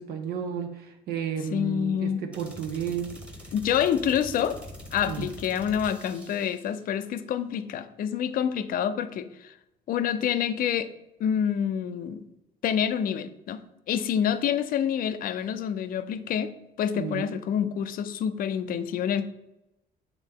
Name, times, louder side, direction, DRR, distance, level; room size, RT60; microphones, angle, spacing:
voice 1, 0.0-3.1 5.1-5.3 16.9-17.3, right 7 dB, 70° right, 4 dB, 0.8 m, -32 dB
voice 2, 1.5-2.2 3.5-4.6 4.9-9.5 9.9-10.9 11.2-12.2 12.6-13.6 13.9-16.5 16.8-19.2, left 8 dB, 55° left, 11 dB, 0.5 m, -27 dB
sound 1, 2.3-6.8, left 1 dB, 5° right, 1.1 m, -44 dB
8.2 x 3.2 x 3.6 m, 0.90 s
cardioid pair, 110°, 17 cm